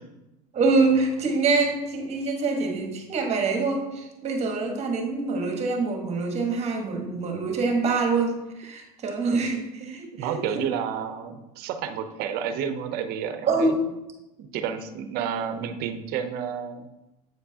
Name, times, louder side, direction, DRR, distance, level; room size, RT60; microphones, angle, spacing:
voice 1, 0.5-10.4 13.5-13.8, right 3 dB, 35° right, 3 dB, 1.3 m, -25 dB
voice 2, 9.8-13.7 14.4-16.9, right 8 dB, 55° right, 9 dB, 0.7 m, -31 dB
8.0 x 4.4 x 2.8 m, 0.96 s
supercardioid pair, 120°, 19 cm